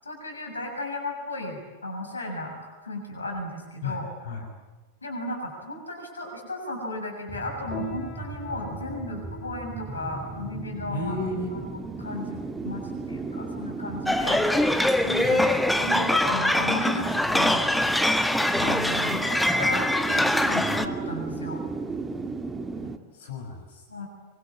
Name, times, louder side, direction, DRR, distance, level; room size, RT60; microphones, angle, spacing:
voice 1, 0.0-2.6 2.8-4.1 5.0-11.2 11.5-14.4 15.0-15.4 15.8-17.7 18.6-21.6 23.9-24.1, left 1 dB, 75° left, 2 dB, 7.1 m, -34 dB
voice 2, 3.8-4.4 10.9-11.6 15.2-15.5 18.6-18.7 23.1-23.8, left 3 dB, 55° left, 0 dB, 6.3 m, -33 dB
sound 1, 7.3-23.0, right 3 dB, 15° right, 1.8 m, -36 dB
Piano, 7.7-17.6, left 8 dB, 30° left, 2.7 m, -46 dB
sound 2, 14.1-20.9, left 1 dB, 5° left, 1.5 m, -23 dB
25.0 x 24.5 x 8.9 m, 1.2 s
figure-of-eight pair, 90°, 0 cm